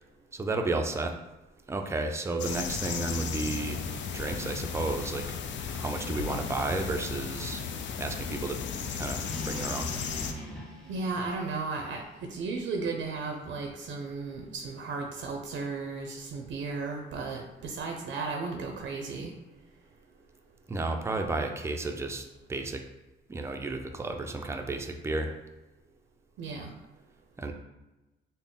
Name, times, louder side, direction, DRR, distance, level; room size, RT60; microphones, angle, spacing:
voice 1, 0.3-1.1 1.7-3.9 4.1-5.4 5.7-7.6 8.0-8.6 8.9-9.9 20.7-22.8 23.3-25.4 27.4-27.5, right 2 dB, 15° right, 4 dB, 0.4 m, -32 dB
sound 1, 2.4-10.3, left 6 dB, 70° left, 0.4 m, -35 dB
sound 2, 9.2-13.4, right 1 dB, 5° left, 1.1 m, -43 dB
voice 2, 10.9-19.3 26.4-26.7, right 4 dB, 75° right, 2 dB, 0.5 m, -35 dB
3.7 x 2.0 x 3.6 m, 1.0 s
cardioid pair, 90°, 20 cm